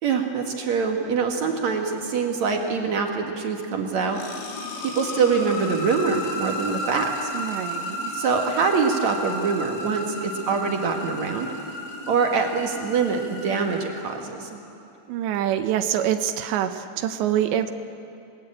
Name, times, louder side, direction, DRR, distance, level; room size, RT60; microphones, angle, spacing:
voice 1, 0.0-4.2 4.8-7.3 8.1-11.5 11.8-14.5, right 5 dB, 60° right, 3 dB, 1.9 m, -24 dB
sound 1, 3.8-14.5, left 1 dB, 80° left, 5.4 m, -33 dB
voice 2, 7.3-8.1 15.1-17.7, right 10 dB, 75° right, 9 dB, 3.0 m, -25 dB
28.5 x 20.0 x 8.8 m, 2.7 s
omnidirectional pair, 5.4 m